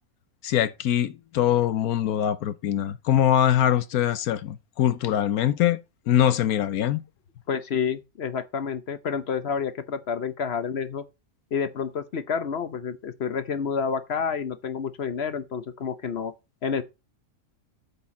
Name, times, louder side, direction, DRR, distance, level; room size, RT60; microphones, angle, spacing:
voice 1, 0.4-5.8 6.1-7.0, left 11 dB, 80° left, 1.2 m, -23 dB
voice 2, 7.5-11.0 11.5-16.3 16.6-16.8, left 6 dB, 50° left, 1.0 m, -29 dB
8.3 x 4.6 x 7.1 m
omnidirectional pair, 1.5 m